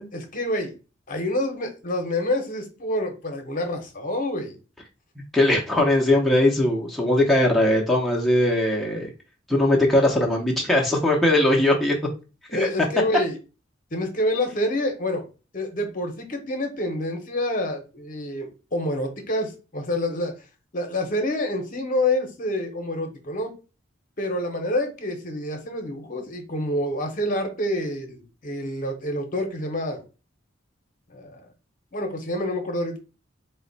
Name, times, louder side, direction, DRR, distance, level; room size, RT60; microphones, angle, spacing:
voice 1, 0.1-0.7 1.1-4.5 12.5-13.4 13.9-15.2 15.5-20.3 20.7-23.5 24.2-30.0 31.1-31.4 31.9-33.0, left 1 dB, 45° left, 0.8 m, -27 dB
voice 2, 5.3-9.1 9.5-12.0 12.5-12.7, left 1 dB, ahead, 0.7 m, -20 dB
3.9 x 2.1 x 3.9 m
head